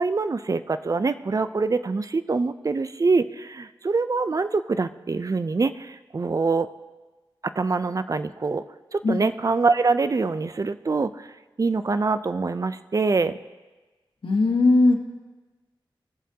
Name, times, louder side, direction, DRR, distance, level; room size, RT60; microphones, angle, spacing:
voice 1, 0.0-6.7 7.4-8.6 8.9-11.3 11.6-13.3, right 4 dB, 40° right, 12 dB, 0.5 m, -24 dB
voice 2, 14.2-15.0, left 2 dB, 75° left, 2 dB, 1.5 m, -18 dB
20.5 x 7.4 x 2.8 m, 1.2 s
wide cardioid pair, 65°, 9 cm